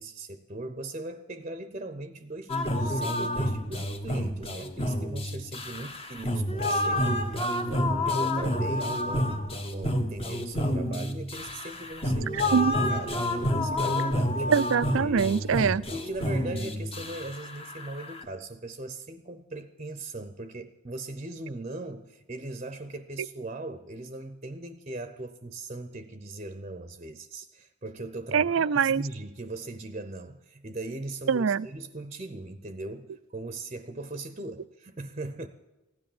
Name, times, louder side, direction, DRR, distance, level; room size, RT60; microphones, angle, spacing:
voice 1, 0.0-14.5 15.0-15.5 15.8-35.5, right 2 dB, 35° right, 10 dB, 0.7 m, -39 dB
sound 1, 2.5-18.2, left 1 dB, 30° left, 1.2 m, -29 dB
voice 2, 12.3-12.7 14.5-15.8 28.3-29.0 31.3-31.7, right 6 dB, 75° right, 19 dB, 0.4 m, -24 dB
16.0 x 10.5 x 7.2 m, 1.1 s
head